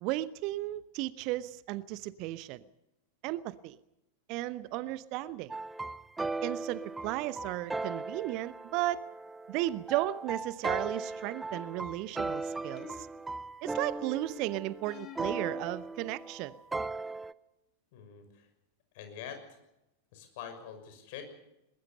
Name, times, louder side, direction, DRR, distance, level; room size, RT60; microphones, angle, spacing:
voice 1, 0.0-2.6 3.2-3.8 4.3-5.5 6.4-9.0 9.5-13.1 13.6-16.6, right 16 dB, 40° right, 17 dB, 0.8 m, -35 dB
sound 1, 5.5-17.3, right 3 dB, 10° right, 0.7 m, -38 dB
sound 2, 11.5-12.0 12.8-13.6 14.9-15.7, left 10 dB, 30° left, 2.2 m, -50 dB
voice 2, 17.9-18.5 18.9-19.6 20.1-21.2, left 8 dB, 50° left, 6 dB, 6.2 m, -45 dB
22.0 x 21.5 x 6.8 m, 0.89 s
figure-of-eight pair, 90°, 0 cm